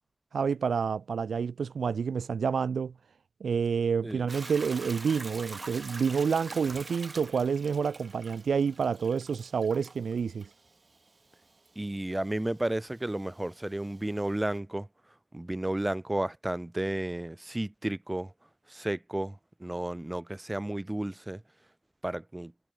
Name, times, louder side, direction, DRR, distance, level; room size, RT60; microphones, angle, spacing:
voice 1, 0.3-2.9 3.4-10.5, right 6 dB, 85° right, 0.6 m, -28 dB
Hiss / Toilet flush / Trickle dribble, 4.3-14.6, right 3 dB, 30° right, 7.3 m, -46 dB
voice 2, 11.7-14.9 15.3-18.3 18.7-19.3 19.6-21.4 22.0-22.5, right 1 dB, 15° right, 5.1 m, -32 dB
wide cardioid pair, 140°, 0 cm